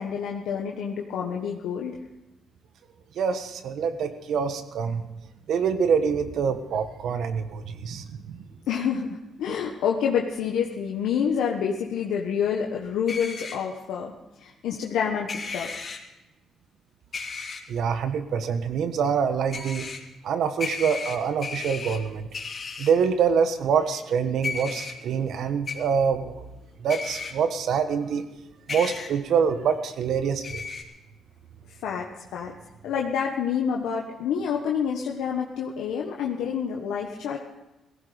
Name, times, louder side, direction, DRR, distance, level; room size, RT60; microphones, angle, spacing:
voice 1, 0.0-2.0 8.7-14.1 14.4-15.7 31.8-32.5 32.8-37.4, left 7 dB, 85° left, 0 dB, 1.3 m, -28 dB
voice 2, 3.1-5.1 5.5-8.4 17.7-19.9 20.2-22.3 22.8-26.4 26.8-28.2 28.7-30.7, right 6 dB, 70° right, 9 dB, 1.4 m, -25 dB
sound 1, 13.1-13.6 15.3-16.0 17.1-17.6 19.5-20.0 20.6-22.0 22.3-22.9 24.4-24.9 25.7-25.8 26.9-27.3 28.7-29.1 30.4-30.8, left 5 dB, 45° left, 3.0 m, -34 dB
18.0 x 15.5 x 5.2 m, 1.0 s
cardioid pair, 75°, 0 cm